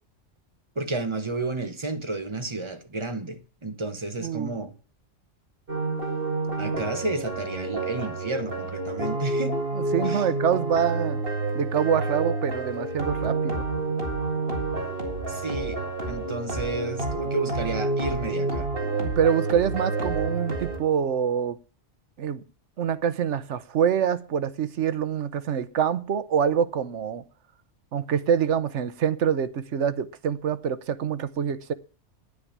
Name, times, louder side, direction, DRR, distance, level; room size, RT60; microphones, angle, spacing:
voice 1, 0.7-4.7 6.6-9.5 10.0-10.3 15.3-18.7, right 2 dB, 25° right, 1.4 m, -31 dB
voice 2, 4.2-4.6 9.7-11.2 11.5-13.6 19.0-21.6 22.2-22.4 22.8-27.2 27.9-31.7, right 8 dB, 75° right, 1.1 m, -25 dB
sound 1, 5.7-20.8, right 3 dB, 50° right, 2.5 m, -29 dB
10.0 x 9.9 x 7.3 m
omnidirectional pair, 1.2 m